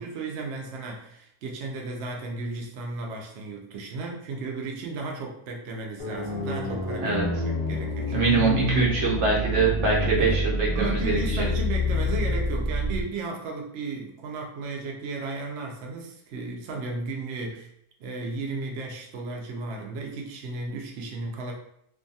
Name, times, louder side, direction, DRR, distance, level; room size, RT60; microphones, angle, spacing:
voice 1, 0.0-8.4 10.2-10.5 10.7-17.7 18.0-21.5, right 3 dB, 90° right, 0 dB, 0.6 m, -34 dB
sound 1, 6.0-13.0, left 1 dB, 85° left, 0.3 m, -28 dB
voice 2, 8.1-11.4, right 3 dB, 55° right, -3 dB, 0.9 m, -24 dB
2.6 x 2.3 x 2.6 m, 0.74 s
omnidirectional pair, 1.7 m